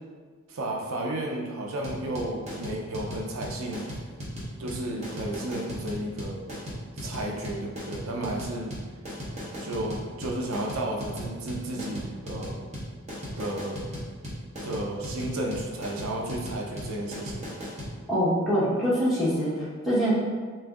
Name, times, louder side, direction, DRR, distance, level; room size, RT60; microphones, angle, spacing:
voice 1, 0.5-3.9 4.6-6.4 7.0-8.8 9.6-12.6 13.4-13.8 14.6-17.4, right 1 dB, 80° right, 0 dB, 0.5 m, -33 dB
sound 1, 1.8-17.9, equal, 30° right, 0.9 m, -36 dB
voice 2, 18.1-20.1, equal, ahead, -11 dB, 1.0 m, -24 dB
3.1 x 2.6 x 3.6 m, 1.5 s
head